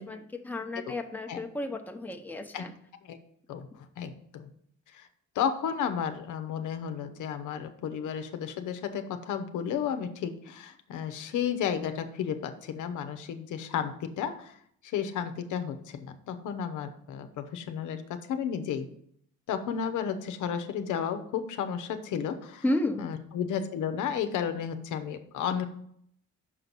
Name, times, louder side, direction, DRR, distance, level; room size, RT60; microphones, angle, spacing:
voice 1, 0.4-2.7 22.6-23.1, left 1 dB, 5° left, 4 dB, 0.9 m, -32 dB
voice 2, 3.5-4.5 4.9-5.1 5.3-14.6 14.8-18.9 19.5-22.6 23.0-25.6, left 8 dB, 85° left, 8 dB, 0.8 m, -33 dB
6.2 x 4.0 x 6.1 m, 0.67 s
cardioid pair, 90°, 30 cm